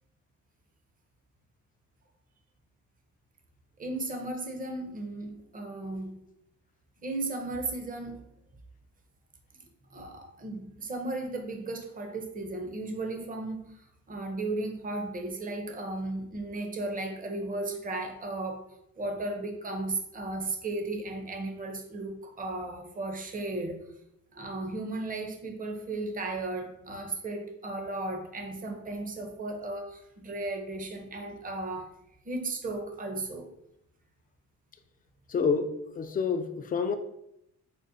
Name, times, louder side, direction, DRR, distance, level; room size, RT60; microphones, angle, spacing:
voice 1, 3.8-6.2 7.0-8.3 9.9-13.6 14.1-18.6 19.0-23.8 24.3-31.9 32.3-33.5, right 2 dB, 30° right, 4 dB, 0.6 m, -35 dB
voice 2, 35.3-37.0, left 5 dB, 30° left, 8 dB, 0.4 m, -28 dB
5.1 x 2.1 x 2.5 m, 0.79 s
cardioid pair, 90°, 30 cm